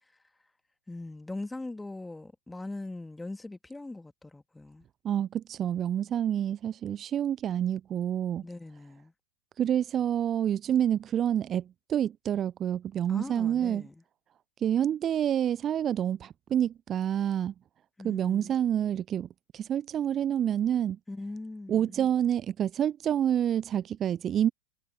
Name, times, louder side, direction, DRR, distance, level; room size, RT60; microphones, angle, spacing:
voice 1, 0.9-4.9 8.4-9.1 13.1-14.0 18.0-18.6 21.1-22.0, left 2 dB, 5° left, 2.4 m, -41 dB
voice 2, 5.0-8.5 9.6-11.6 11.9-13.9 14.6-17.5 18.0-19.3 19.5-21.0 21.7-24.5, right 10 dB, 25° right, 0.9 m, -28 dB
figure-of-eight pair, 90°, 0 cm